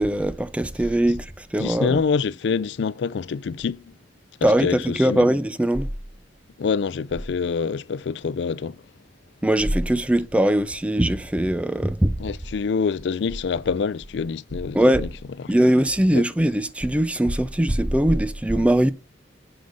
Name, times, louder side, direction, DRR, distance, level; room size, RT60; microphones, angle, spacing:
voice 1, 0.0-2.0 4.4-5.9 9.4-12.2 14.7-15.1 15.5-18.9, right 1 dB, 5° right, 0.4 m, -21 dB
voice 2, 1.6-3.9 4.4-5.3 6.6-8.8 12.2-15.1 16.1-16.2, left 5 dB, 70° left, 0.4 m, -26 dB
7.9 x 5.0 x 5.3 m
head